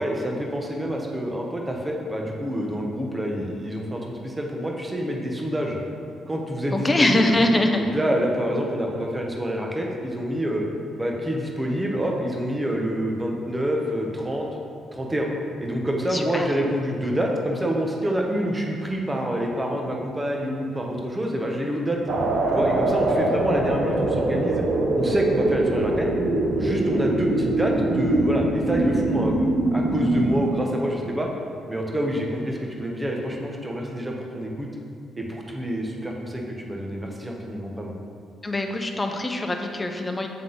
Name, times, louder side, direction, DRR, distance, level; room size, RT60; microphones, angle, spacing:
voice 1, 0.0-5.8 6.3-7.4 7.9-10.6 11.0-14.5 14.9-15.3 15.6-22.0 22.5-24.6 24.9-26.1 26.6-29.4 29.7-31.3 31.7-34.7 35.2-37.9, equal, 15° right, 0 dB, 0.9 m, -27 dB
voice 2, 6.7-7.8 16.1-16.5 38.4-40.3, left 1 dB, 20° left, 4 dB, 0.6 m, -23 dB
sound 1, 22.1-30.4, right 2 dB, 65° right, 0.7 m, -23 dB
7.7 x 3.7 x 3.8 m, 2.3 s
cardioid pair, 90°, 0 cm